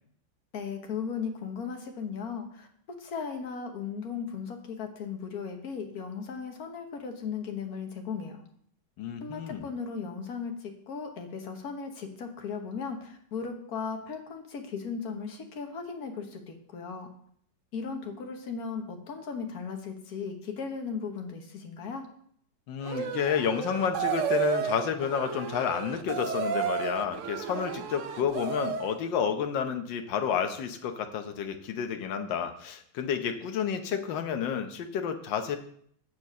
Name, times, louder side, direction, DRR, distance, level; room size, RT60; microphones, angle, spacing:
voice 1, 0.5-2.7 3.0-8.4 9.2-17.1 17.7-22.1, left 5 dB, 55° left, 4 dB, 1.6 m, -37 dB
voice 2, 9.0-9.7 22.7-35.6, left 7 dB, 75° left, 6 dB, 1.6 m, -30 dB
sound 1, 22.8-29.0, right 7 dB, 85° right, 0.6 m, -32 dB
8.1 x 4.5 x 7.3 m, 0.65 s
omnidirectional pair, 2.1 m